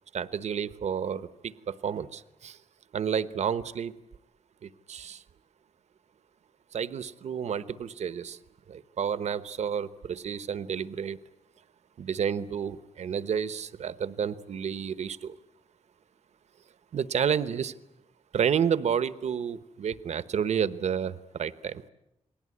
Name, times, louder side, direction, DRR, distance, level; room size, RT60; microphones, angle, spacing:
voice 1, 0.1-2.6 2.9-3.9 4.6-5.2 6.7-8.4 8.7-11.2 12.0-15.4 16.9-17.7 18.3-21.8, right 7 dB, 85° right, 14 dB, 1.1 m, -30 dB
29.0 x 20.5 x 9.7 m, 0.87 s
wide cardioid pair, 135°, 11 cm